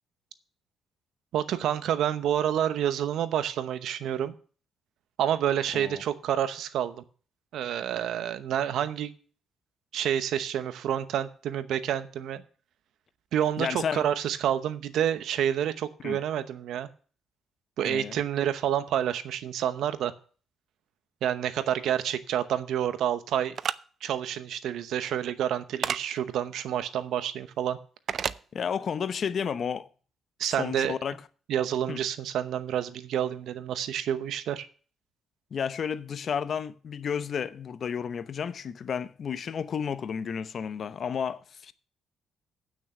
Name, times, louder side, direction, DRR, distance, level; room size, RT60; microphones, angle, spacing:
voice 1, 1.3-4.3 5.2-7.0 7.5-9.1 9.9-12.4 13.3-16.9 17.8-20.1 21.2-23.5 24.0-27.8 30.4-30.9 31.5-34.7, right 10 dB, 75° right, 0.8 m, -28 dB
voice 2, 13.6-14.0 16.0-16.2 17.8-18.2 28.5-29.9 30.6-31.2 31.9-32.0 35.5-41.7, left 7 dB, 55° left, 0.7 m, -32 dB
sound 1, 23.6-23.8 25.8-26.0 28.1-28.4, right 7 dB, 55° right, 0.4 m, -28 dB
8.7 x 6.3 x 6.8 m
cardioid pair, 90°, 0 cm